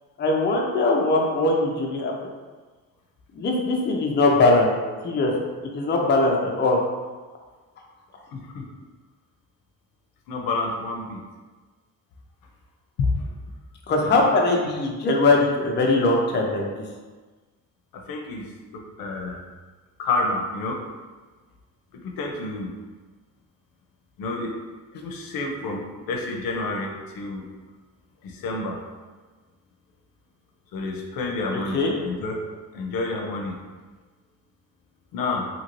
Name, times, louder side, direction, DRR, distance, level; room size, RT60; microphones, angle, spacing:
voice 1, 0.2-2.1 3.3-4.8 5.0-5.3 5.7-6.8 13.9-16.6 31.7-31.9, left 2 dB, 30° left, -1 dB, 0.5 m, -21 dB
voice 2, 8.3-8.7 10.3-11.2 13.0-13.3 14.1-14.4 15.2-15.3 17.9-19.4 20.0-20.8 21.9-22.7 24.2-24.6 24.9-27.4 28.2-28.8 30.7-32.4 32.7-33.6 35.1-35.5, left 3 dB, 80° left, 1 dB, 0.6 m, -29 dB
2.8 x 2.6 x 2.9 m, 1.3 s
cardioid pair, 120°, 34 cm